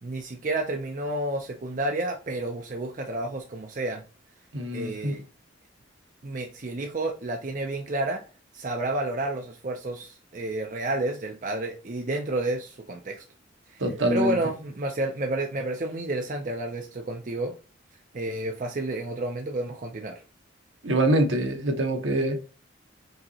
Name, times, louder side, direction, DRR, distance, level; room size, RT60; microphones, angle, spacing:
voice 1, 0.0-4.0 4.7-5.2 6.2-8.2 8.5-13.2 13.7-13.8 14.1-17.5 18.1-20.2, right 2 dB, 40° right, 0.5 m, -30 dB
voice 2, 4.5-5.1 13.8-14.4 20.8-22.4, right 1 dB, 70° right, 1.0 m, -24 dB
5.3 x 2.9 x 2.8 m
head